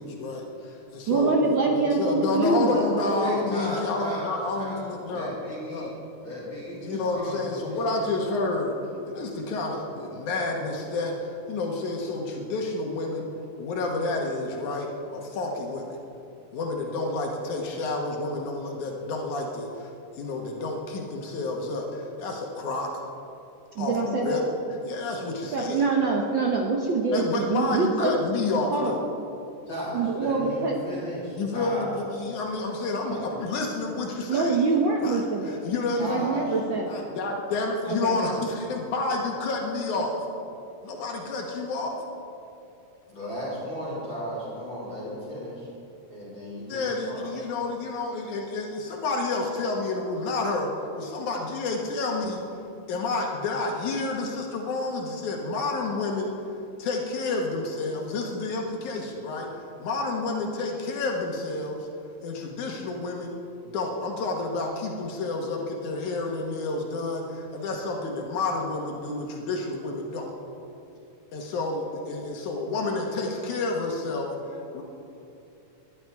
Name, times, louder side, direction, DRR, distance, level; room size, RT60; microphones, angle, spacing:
voice 1, 0.0-5.4 5.7-5.9 6.8-8.7 9.1-13.3 13.6-15.9 16.5-19.9 20.2-23.0 23.8-24.4 24.9-25.8 27.1-29.0 31.4-34.6 35.0-36.1 36.9-40.2 40.8-42.0 46.7-52.4 52.9-56.3 56.8-59.5 59.8-61.9 62.2-63.4 63.6-70.3 71.3-74.8, left 3 dB, 70° left, 0 dB, 2.7 m, -29 dB
voice 2, 1.1-2.9 23.7-24.4 25.5-28.1 28.7-28.9 29.9-30.8 34.3-35.7 36.0-37.1 37.9-38.5, right 3 dB, 75° right, 0 dB, 1.1 m, -25 dB
voice 3, 2.7-8.1 29.7-31.9 33.1-33.4 36.0-36.6 43.1-45.7 46.1-47.4, equal, 40° left, -7 dB, 3.9 m, -35 dB
21.0 x 11.0 x 4.7 m, 2.8 s
omnidirectional pair, 3.6 m